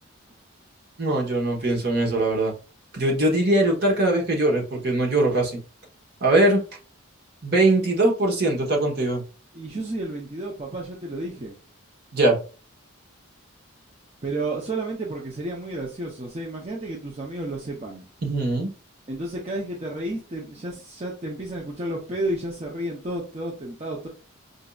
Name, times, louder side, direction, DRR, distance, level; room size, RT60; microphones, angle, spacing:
voice 1, 1.0-2.5 2.9-5.6 6.2-6.6 7.4-9.2 12.1-12.4 18.2-18.7, right 2 dB, 50° right, 0 dB, 1.0 m, -21 dB
voice 2, 9.5-11.5 14.2-18.1 19.1-24.1, right 2 dB, 30° right, -2 dB, 0.6 m, -31 dB
5.0 x 2.6 x 2.3 m, 0.35 s
head